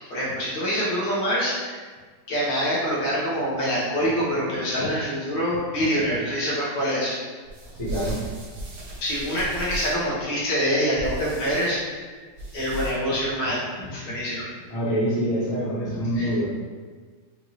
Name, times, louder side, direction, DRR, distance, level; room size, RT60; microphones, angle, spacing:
voice 1, 0.1-1.7 2.3-7.2 9.0-11.8 12.1-12.2 12.5-14.5 15.9-16.3, equal, 75° left, -8 dB, 2.0 m, -25 dB
sound 1, 7.4-10.1 11.0-11.7 12.3-13.2, right 1 dB, 60° right, 1.6 m, -35 dB
voice 2, 7.7-8.2 14.7-16.4, equal, 20° left, -10 dB, 1.1 m, -25 dB
5.3 x 2.6 x 3.1 m, 1.5 s
omnidirectional pair, 2.3 m